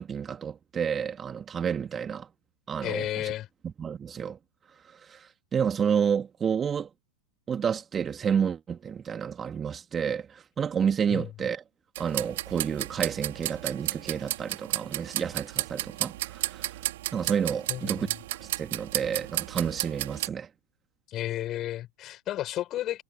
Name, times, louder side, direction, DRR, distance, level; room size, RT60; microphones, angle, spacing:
voice 1, 0.0-2.3 2.7-3.3 3.8-4.4 5.0-6.9 7.5-11.6 12.0-16.7 17.1-18.1 18.4-20.5, right 7 dB, 20° right, 3.0 m, -30 dB
voice 2, 2.8-3.5 11.1-11.3 17.7-18.1 21.1-23.0, left 13 dB, 35° left, 7.5 m, -32 dB
sound 1, 12.0-20.3, right 16 dB, 60° right, 4.3 m, -33 dB
figure-of-eight pair, 95°, 0 cm